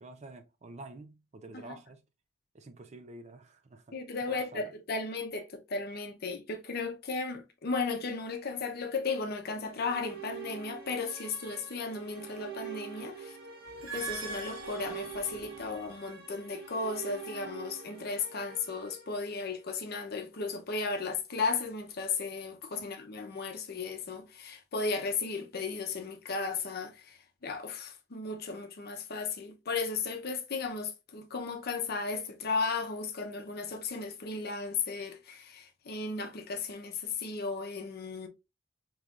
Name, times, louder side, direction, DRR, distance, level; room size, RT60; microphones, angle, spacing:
voice 1, 0.0-2.0 2.5-4.0 4.3-4.7 22.8-22.9, right 2 dB, 35° right, 0.4 m, -48 dB
voice 2, 3.9-13.4 13.8-38.3, left 4 dB, 50° left, 0.7 m, -35 dB
sound 1, 9.5-19.7, right 7 dB, 55° right, 1.4 m, -45 dB
sound 2, 13.7-15.9, right 5 dB, 80° right, 1.1 m, -42 dB
5.1 x 3.0 x 2.4 m
head